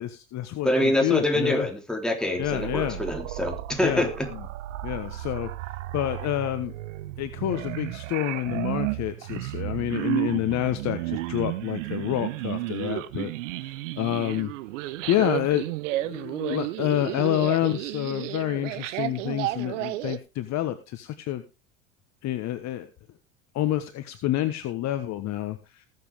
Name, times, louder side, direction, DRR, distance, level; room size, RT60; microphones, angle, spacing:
voice 1, 0.0-1.7 2.4-3.0 3.8-4.1 4.8-5.5 5.9-6.7 7.2-13.3 13.6-14.5 15.1-15.6 15.9-21.4 22.2-22.9 23.5-25.8, left 13 dB, 45° left, 11 dB, 1.3 m, -28 dB
voice 2, 0.6-4.3, left 1 dB, ahead, 3 dB, 3.4 m, -25 dB
sound 1, 2.4-20.2, right 17 dB, 70° right, 1.0 m, -33 dB
19.5 x 7.7 x 3.5 m, 0.27 s
hypercardioid pair, 80°, 39 cm